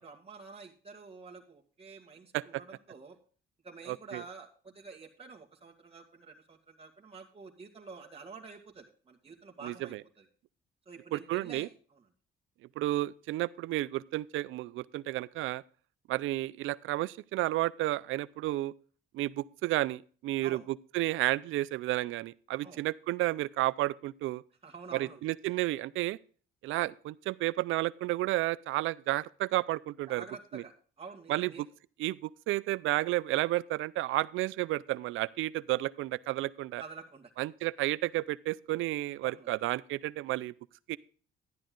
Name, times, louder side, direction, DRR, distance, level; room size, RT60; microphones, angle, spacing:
voice 1, 0.0-3.2 3.6-10.3 10.9-12.0 20.4-20.7 22.6-22.8 24.6-25.2 30.1-31.6 36.8-37.3 39.2-39.6, right 4 dB, 30° right, 2.0 m, -49 dB
voice 2, 3.9-4.2 9.6-10.0 11.1-11.7 12.8-15.6 16.1-18.7 19.1-20.6 20.9-24.4 24.9-26.2 26.6-30.2 30.5-30.6 31.3-31.5 32.0-36.8 37.4-40.5 40.9-41.0, right 16 dB, 85° right, 0.5 m, -32 dB
12.0 x 10.5 x 3.8 m
cardioid pair, 90°, 20 cm